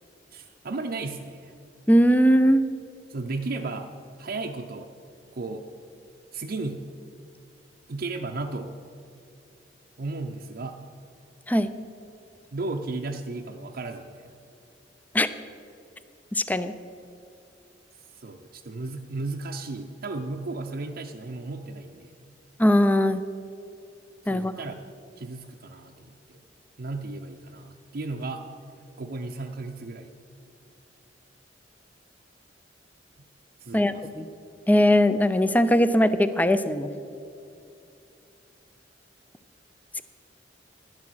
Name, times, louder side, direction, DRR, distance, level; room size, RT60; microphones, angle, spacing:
voice 1, 0.3-1.6 3.1-3.9 4.2-4.9 5.3-5.7 6.3-6.9 7.9-8.7 10.0-10.8 12.5-14.2 18.1-22.1 24.3-24.9 25.2-26.4 26.8-28.5 29.0-30.1 33.6-34.1, right 3 dB, 55° right, 3 dB, 0.6 m, -34 dB
voice 2, 1.9-2.6 11.5-11.7 15.1-15.3 16.3-16.7 22.6-23.2 24.3-24.5 33.7-34.3 34.7-36.9, equal, 10° left, 12 dB, 0.4 m, -20 dB
11.0 x 10.5 x 6.2 m, 2.6 s
head